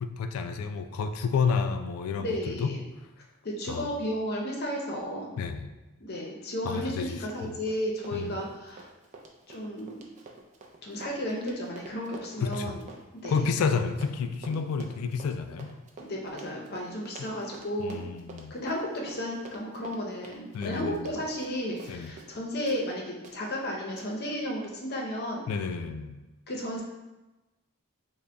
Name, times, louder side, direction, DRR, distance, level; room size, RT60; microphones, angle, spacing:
voice 1, 0.0-2.7 3.7-3.9 5.4-5.7 6.6-7.5 8.1-8.3 12.4-12.8 13.3-15.7 17.8-18.5 20.5-21.1 21.9-22.1 25.5-26.2, left 5 dB, 75° left, 7 dB, 0.3 m, -30 dB
voice 2, 2.2-2.8 3.4-5.3 6.0-8.9 9.5-10.0 10.8-12.8 13.2-13.5 14.5-14.6 16.0-18.0 18.5-25.5 26.5-26.8, equal, 45° left, -1 dB, 0.6 m, -33 dB
Run, 6.8-7.0 7.3-22.4 22.7-22.8 23.2-23.4 24.0-24.1, right 3 dB, 35° right, 0.4 m, -48 dB
3.8 x 2.1 x 3.3 m, 1.1 s
head